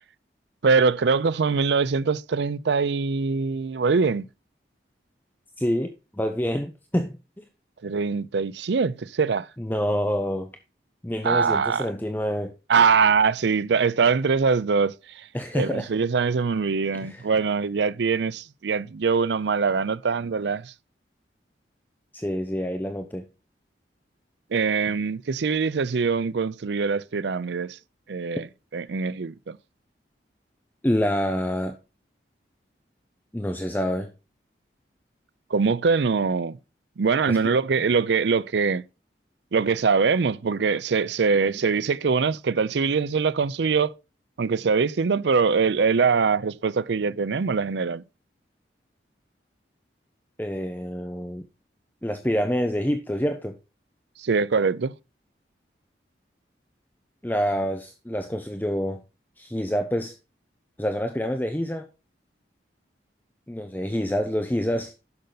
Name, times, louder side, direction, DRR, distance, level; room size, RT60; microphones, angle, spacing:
voice 1, 0.6-4.2 7.8-9.5 11.2-11.9 12.7-15.3 15.6-20.7 24.5-27.8 28.1-28.5 28.7-29.6 35.5-36.6 37.0-38.8 39.5-43.9 44.4-48.0 54.2-54.9, right 5 dB, 75° right, 0.5 m, -23 dB
voice 2, 5.6-7.4 9.6-10.5 11.0-12.5 15.3-15.9 16.9-17.3 22.1-23.2 30.8-31.8 33.3-34.1 37.3-37.4 50.4-51.4 52.0-53.6 57.2-59.0 59.4-60.1 60.8-61.9 63.5-64.9, equal, 10° left, 0.7 m, -27 dB
10.5 x 6.7 x 4.0 m
head